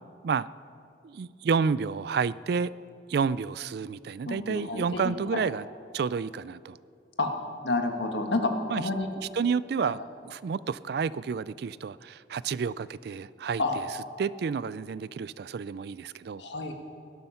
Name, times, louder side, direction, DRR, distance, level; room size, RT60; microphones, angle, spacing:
voice 1, 1.0-2.7 3.1-5.6 5.9-6.8 8.7-8.8 9.3-13.6 14.2-16.4, right 5 dB, 55° right, 19 dB, 0.3 m, -30 dB
voice 2, 4.2-5.4 7.2-7.3 7.6-9.1 9.8-9.9 13.6-13.8 16.4-16.7, left 2 dB, 70° left, 4 dB, 1.5 m, -29 dB
18.5 x 12.0 x 5.7 m, 2.4 s
head